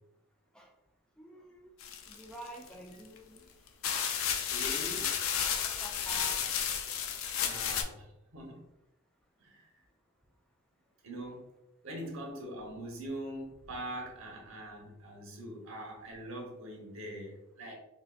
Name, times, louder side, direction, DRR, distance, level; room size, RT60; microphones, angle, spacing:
voice 1, 1.2-1.7 2.1-3.5 4.2-4.3 5.8-6.5 7.3-7.4 12.0-12.2, right 2 dB, 5° left, 0 dB, 0.3 m, -48 dB
sound 1, 1.8-2.7 3.4-3.5 3.8-7.8, left 8 dB, 80° left, 0.4 m, -32 dB
voice 2, 4.5-5.1 7.4-8.6 9.4-9.7 11.0-11.4 11.8-17.7, right 1 dB, 80° right, 0 dB, 0.9 m, -42 dB
4.1 x 2.2 x 2.3 m, 0.93 s
head